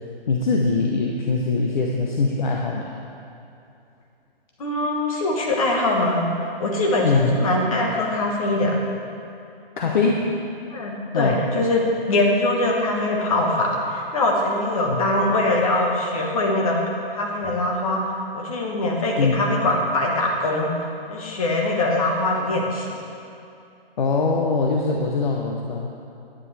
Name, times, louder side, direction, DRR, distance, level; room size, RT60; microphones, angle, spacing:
voice 1, 0.3-2.9 7.0-7.4 9.8-10.3 11.1-11.4 14.8-15.0 19.2-19.4 24.0-25.9, left 4 dB, 50° left, 0 dB, 0.8 m, -22 dB
voice 2, 4.6-6.3 6.6-8.7 9.8-10.0 10.7-11.8 12.1-16.8 17.1-18.0 18.3-20.7 21.1-22.9, left 2 dB, 35° left, -1 dB, 1.3 m, -22 dB
9.8 x 9.8 x 3.3 m, 2.6 s
hypercardioid pair, 170°, 30 cm